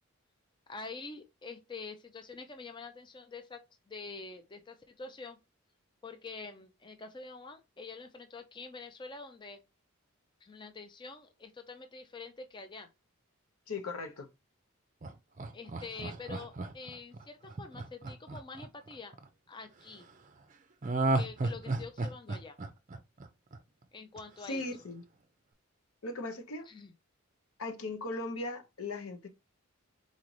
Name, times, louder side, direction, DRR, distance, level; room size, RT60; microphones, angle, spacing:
voice 1, 0.7-3.6 3.9-5.4 6.0-9.6 10.4-12.9 15.5-19.1 19.5-20.1 21.1-22.6 23.9-24.6 26.7-26.9, left 4 dB, 20° left, 0.4 m, -46 dB
voice 2, 13.7-14.3 24.4-25.0 26.0-26.7 27.6-29.3, left 2 dB, 75° left, 0.8 m, -38 dB
Laughter, 15.0-19.2 20.8-23.8 24.2-24.3, right 2 dB, 35° right, 0.5 m, -34 dB
4.1 x 3.1 x 3.9 m
head